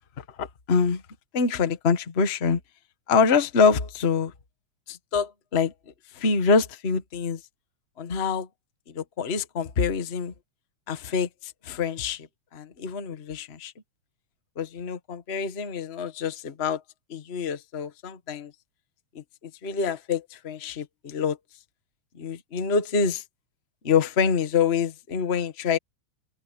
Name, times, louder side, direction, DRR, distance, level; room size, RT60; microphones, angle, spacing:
voice 1, 0.2-1.0 1.3-2.6 3.1-4.3 4.9-5.7 6.1-7.4 8.0-8.5 8.9-10.3 10.9-12.3 12.5-13.7 14.6-16.8 17.1-18.5 19.1-19.2 19.6-21.4 22.1-23.2 23.8-25.8, left 5 dB, 80° left, 0.5 m, -25 dB
open air
omnidirectional pair, 3.5 m